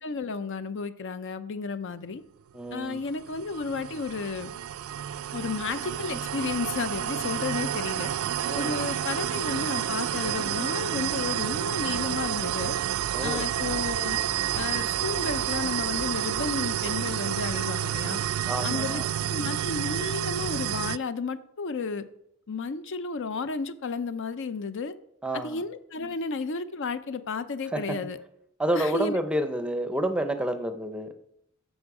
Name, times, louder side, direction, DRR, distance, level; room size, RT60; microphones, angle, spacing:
voice 1, 0.0-2.2 2.7-4.5 5.3-8.1 8.6-12.8 13.2-14.2 14.5-18.2 18.6-19.0 19.3-22.0 22.5-24.9 25.3-28.2 28.7-29.2, left 4 dB, 55° left, 13 dB, 0.6 m, -32 dB
voice 2, 2.5-3.0 8.4-8.7 13.1-13.5 18.5-19.0 25.2-25.6 27.7-28.0 28.6-31.1, right 1 dB, 5° right, 9 dB, 0.6 m, -29 dB
sound 1, 3.0-21.0, right 10 dB, 65° right, 0.3 m, -30 dB
14.0 x 5.3 x 4.8 m, 0.75 s
head